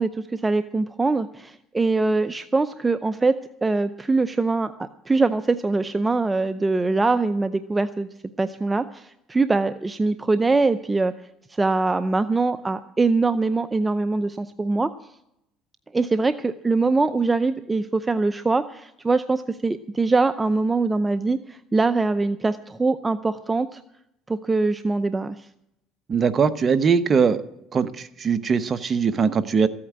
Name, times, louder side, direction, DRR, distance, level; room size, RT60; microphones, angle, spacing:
voice 1, 0.0-8.1 8.4-11.1 11.6-14.9 15.9-23.8 24.3-25.4, right 3 dB, 15° right, 11 dB, 0.6 m, -23 dB
voice 2, 26.1-27.4 27.7-29.7, right 6 dB, 35° right, 12 dB, 1.0 m, -21 dB
14.5 x 8.7 x 8.8 m, 0.81 s
supercardioid pair, 100°, 0 cm